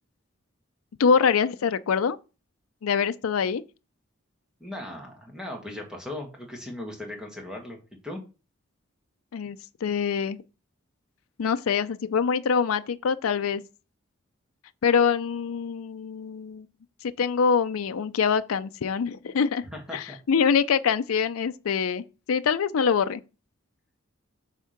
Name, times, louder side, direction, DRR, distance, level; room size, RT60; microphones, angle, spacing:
voice 1, 1.0-2.2 2.8-3.6 9.3-10.4 11.4-13.6 14.8-16.7 17.0-19.6 19.9-23.2, left 6 dB, 85° left, 0.4 m, -24 dB
voice 2, 4.6-7.8 8.0-8.2 19.7-20.5, left 1 dB, 5° right, 1.7 m, -38 dB
8.3 x 3.6 x 5.8 m
head